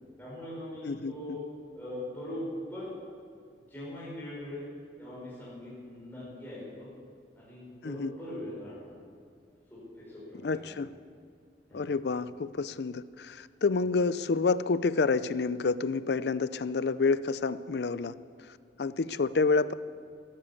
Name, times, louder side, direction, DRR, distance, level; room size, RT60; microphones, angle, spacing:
voice 1, 0.2-1.4 1.7-2.9 3.7-4.6 5.0-6.9 7.3-9.1 9.7-10.7 11.7-11.8, left 1 dB, 10° left, -9 dB, 4.9 m, -41 dB
voice 2, 0.8-1.2 7.8-8.1 10.4-10.9 11.7-18.1 18.4-19.7, left 4 dB, 70° left, 16 dB, 0.5 m, -29 dB
14.0 x 12.0 x 8.4 m, 2.2 s
head